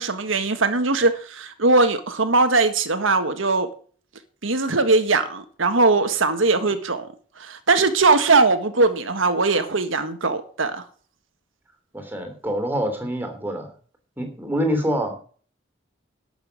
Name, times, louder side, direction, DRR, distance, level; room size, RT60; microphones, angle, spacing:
voice 1, 0.0-3.7 4.4-7.1 7.4-10.8, right 3 dB, 85° right, 1.5 m, -20 dB
voice 2, 11.9-13.7 14.2-15.2, equal, 10° right, 3.2 m, -26 dB
12.0 x 7.0 x 8.2 m
head